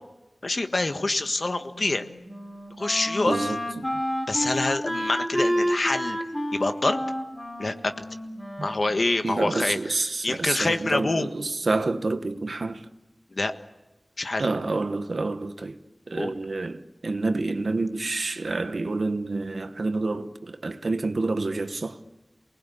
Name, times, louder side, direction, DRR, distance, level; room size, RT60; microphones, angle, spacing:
voice 1, 0.4-2.0 2.8-3.4 4.3-6.2 6.5-7.0 7.6-7.9 8.6-9.8 10.2-11.3 13.3-13.5 14.2-14.4 16.1-16.3, left 2 dB, 65° left, 1.5 m, -26 dB
Wind instrument woodwind instrument, 1.7-9.5, equal, 15° left, 2.9 m, -30 dB
voice 2, 3.3-3.6 3.9-4.0 8.6-8.7 9.2-12.9 14.4-15.8 16.1-22.0, right 3 dB, 90° right, 1.2 m, -28 dB
28.5 x 20.0 x 8.5 m
wide cardioid pair, 65°, 0 cm